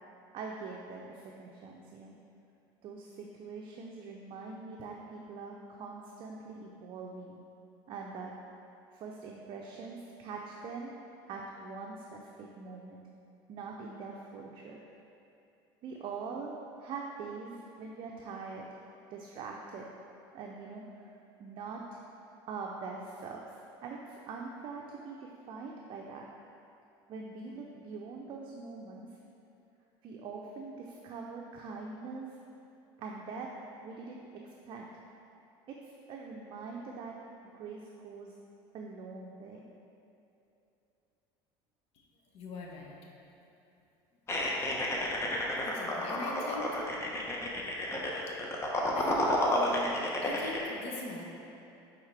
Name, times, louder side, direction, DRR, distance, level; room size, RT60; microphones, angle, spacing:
voice 1, 0.3-2.2 2.8-7.4 7.9-8.3 8.9-10.9 11.2-13.0 13.5-14.8 15.8-18.7 19.1-19.9 20.3-21.1 21.4-22.0 22.5-26.2 27.1-29.1 30.0-32.4 33.0-33.5 33.8-34.8 35.7-37.1 37.5-38.3 38.7-39.6, right 4 dB, 50° right, -1 dB, 0.6 m, -43 dB
voice 2, 42.3-43.0 44.3-44.9 45.4-46.8 48.3-48.7 48.9-49.9 50.2-51.2, left 3 dB, 60° left, -1 dB, 1.0 m, -42 dB
sound 1, 44.3-50.6, left 1 dB, 25° left, 0.9 m, -31 dB
9.4 x 3.6 x 3.3 m, 2.8 s
supercardioid pair, 110°, 11 cm